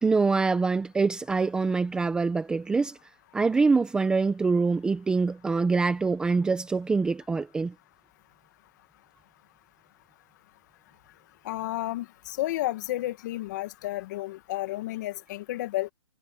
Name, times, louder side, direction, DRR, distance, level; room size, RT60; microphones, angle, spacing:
voice 1, 0.0-3.0 3.3-7.7, right 4 dB, 5° right, 0.9 m, -25 dB
voice 2, 11.4-15.9, left 16 dB, 35° left, 1.6 m, -32 dB
hypercardioid pair, 160°, 16 cm